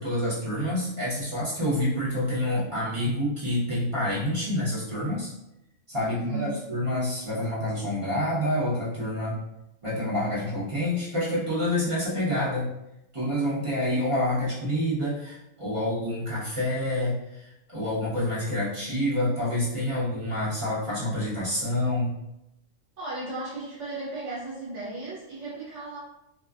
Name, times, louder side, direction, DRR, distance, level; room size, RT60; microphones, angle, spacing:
voice 1, 0.0-5.3 5.9-9.4 9.8-12.7 13.1-22.1, left 1 dB, 30° right, -9 dB, 0.7 m, -27 dB
voice 2, 6.0-6.6 23.0-26.0, right 2 dB, 60° right, -9 dB, 1.1 m, -35 dB
2.5 x 2.3 x 2.3 m, 0.85 s
omnidirectional pair, 1.5 m